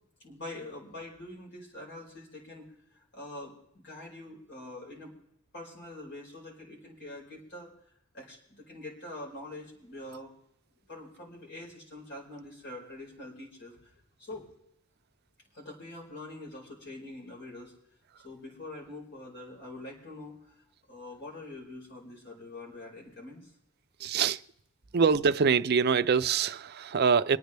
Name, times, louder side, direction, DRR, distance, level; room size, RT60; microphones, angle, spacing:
voice 1, 0.2-2.7 2.9-5.2 5.5-7.7 8.1-10.3 10.9-13.9 14.2-14.5 15.5-17.7 18.2-20.5 20.9-23.5 24.0-24.1, left 2 dB, 55° left, 4.8 m, -44 dB
voice 2, 24.0-24.4 24.9-27.4, right 6 dB, 50° right, 0.5 m, -24 dB
26.5 x 9.3 x 3.4 m
head